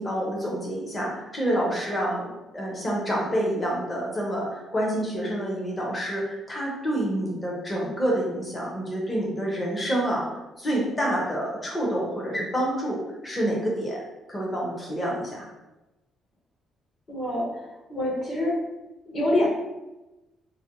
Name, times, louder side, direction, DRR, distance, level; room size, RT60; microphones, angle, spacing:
voice 1, 0.0-10.3 10.6-14.0 14.3-15.5, right 1 dB, 15° left, -4 dB, 0.8 m, -28 dB
voice 2, 17.1-18.6 19.1-19.5, left 1 dB, 35° left, -5 dB, 1.2 m, -26 dB
4.0 x 2.2 x 3.0 m, 1.0 s
cardioid pair, 155°, 0 cm